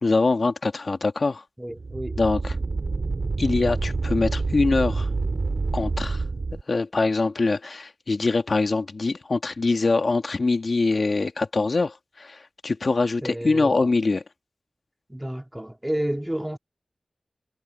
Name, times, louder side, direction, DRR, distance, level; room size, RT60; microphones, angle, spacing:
voice 1, 0.0-1.4 2.2-2.6 3.4-5.1 5.7-6.2 6.7-14.2, left 3 dB, 65° left, 1.8 m, -23 dB
voice 2, 1.6-2.2 13.2-13.9 15.1-16.6, right 1 dB, 10° right, 2.7 m, -30 dB
sound 1, 1.7-6.6, right 3 dB, 65° right, 4.4 m, -27 dB
wide cardioid pair, 70°, 0 cm